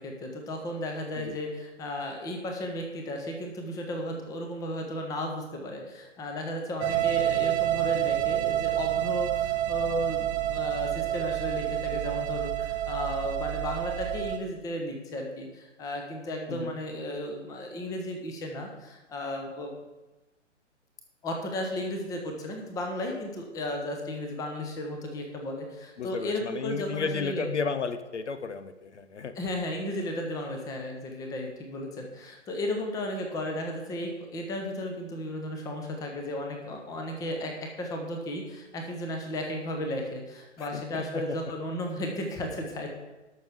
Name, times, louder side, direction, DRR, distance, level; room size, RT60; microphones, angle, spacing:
voice 1, 0.0-19.7 21.2-27.4 29.4-42.9, left 1 dB, 10° left, 3 dB, 1.0 m, -34 dB
sound 1, 6.8-14.4, right 13 dB, 15° right, 0.8 m, -28 dB
voice 2, 26.0-29.4 40.6-41.4, left 5 dB, 65° left, 11 dB, 0.9 m, -33 dB
19.0 x 6.4 x 3.6 m, 1.1 s
figure-of-eight pair, 125°, 37 cm